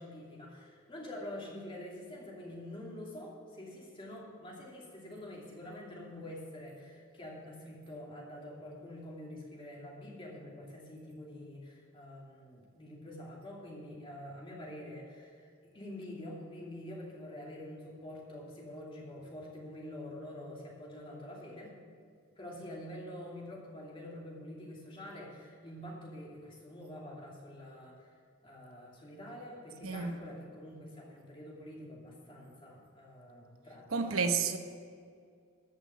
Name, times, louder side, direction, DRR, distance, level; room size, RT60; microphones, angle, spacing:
voice 1, 0.0-21.7 22.3-28.1 28.4-34.2, left 1 dB, 25° left, 2.7 m, -46 dB
voice 2, 29.8-30.2 33.9-34.6, right 5 dB, 80° right, 0.9 m, -31 dB
14.5 x 6.1 x 8.3 m
head